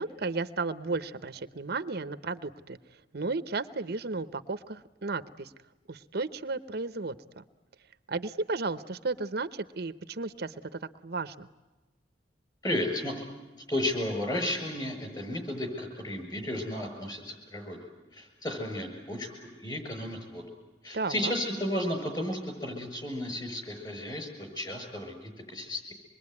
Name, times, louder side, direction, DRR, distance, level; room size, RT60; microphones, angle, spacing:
voice 1, 0.0-2.8 3.1-5.5 5.9-7.4 8.1-11.5 20.9-21.3, right 3 dB, 60° right, 12 dB, 0.8 m, -34 dB
voice 2, 12.6-13.3 13.7-17.8 18.1-20.5 20.8-25.9, left 1 dB, 25° left, 5 dB, 7.1 m, -33 dB
26.0 x 22.0 x 9.6 m, 1.2 s
head